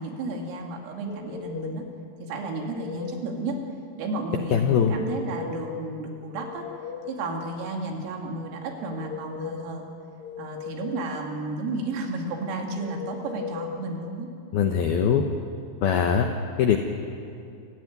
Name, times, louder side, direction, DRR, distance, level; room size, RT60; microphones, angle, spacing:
voice 1, 0.0-1.8 2.2-3.6 4.0-6.7 7.1-9.8 10.4-14.3 14.6-14.8, right 2 dB, 85° right, 2 dB, 5.1 m, -32 dB
sound 1, 1.1-1.9 2.4-3.3 4.8-5.8 6.2-7.3 8.7-9.8 10.2-11.2 12.8-13.8, left 6 dB, 55° left, 2.9 m, -38 dB
voice 2, 4.5-5.0 14.5-15.2 15.8-16.3 16.6-16.8, left 8 dB, 80° left, 4 dB, 2.2 m, -21 dB
28.5 x 15.5 x 9.4 m, 2.5 s
omnidirectional pair, 5.9 m